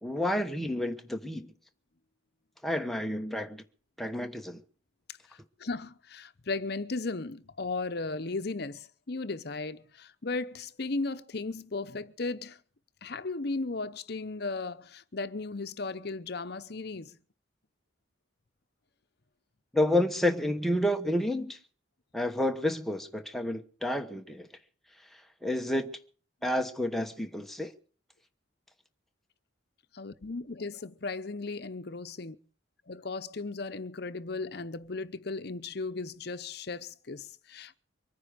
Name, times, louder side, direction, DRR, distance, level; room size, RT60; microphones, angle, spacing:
voice 1, 0.0-1.5 2.6-3.6 4.0-4.6 19.7-21.6 22.1-24.5 25.4-25.9 26.4-27.7, left 1 dB, ahead, 1.0 m, -30 dB
voice 2, 5.1-12.6 13.0-17.2 29.9-32.4 32.9-37.8, left 3 dB, 55° left, 0.8 m, -36 dB
24.0 x 9.8 x 5.0 m
head